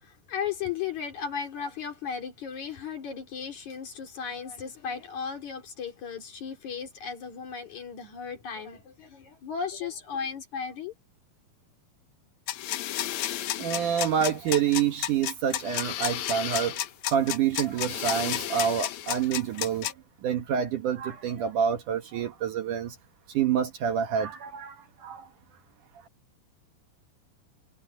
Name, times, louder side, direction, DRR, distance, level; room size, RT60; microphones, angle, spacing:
voice 1, 0.0-10.9, left 7 dB, 50° left, 4.4 m, -35 dB
sound 1, 12.5-19.9, left 12 dB, 70° left, 1.8 m, -32 dB
voice 2, 13.6-16.8 17.1-19.9 20.2-23.0 23.3-25.3, right 8 dB, 65° right, 2.5 m, -27 dB
omnidirectional pair, 4.4 m